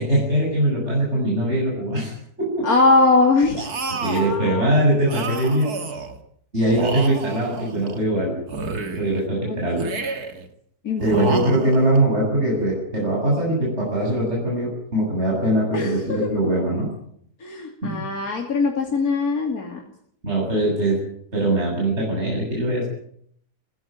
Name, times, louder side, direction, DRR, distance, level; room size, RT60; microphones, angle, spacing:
voice 1, 0.0-2.7 4.0-5.7 6.5-8.4 9.0-9.8 11.0-16.9 17.8-18.1 20.2-21.0 21.3-22.9, right 1 dB, 40° right, -3 dB, 8.2 m, -22 dB
voice 2, 2.6-3.7 4.1-4.7 9.4-9.9 10.8-11.5 15.7-16.0 17.4-19.8, left 3 dB, 65° left, 1 dB, 3.2 m, -21 dB
sound 1, 3.6-4.4 5.1-6.2 6.7-8.0 8.5-9.3 9.8-10.5 11.0-12.0, right 4 dB, 70° right, 2.6 m, -30 dB
23.5 x 16.0 x 9.1 m, 0.68 s
omnidirectional pair, 1.7 m